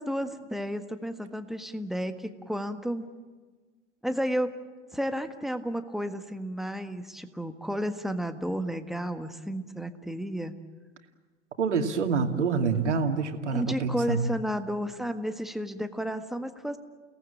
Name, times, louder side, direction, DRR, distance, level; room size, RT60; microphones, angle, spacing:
voice 1, 0.0-3.1 4.0-4.5 4.9-10.5 13.5-16.8, equal, ahead, 8 dB, 1.6 m, -32 dB
voice 2, 11.6-14.3, right 5 dB, 75° right, 6 dB, 2.5 m, -26 dB
30.0 x 18.5 x 8.7 m, 1.3 s
figure-of-eight pair, 90°, 36 cm